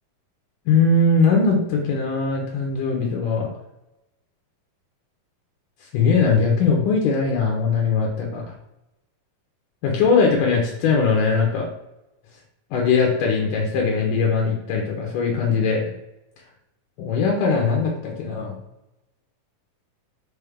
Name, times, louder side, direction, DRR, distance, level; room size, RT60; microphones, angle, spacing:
voice 1, 0.7-3.5 5.8-8.5 9.8-11.7 12.7-15.9 17.0-18.6, left 4 dB, 75° left, 0 dB, 2.4 m, -20 dB
6.9 x 4.3 x 3.5 m, 0.91 s
omnidirectional pair, 3.9 m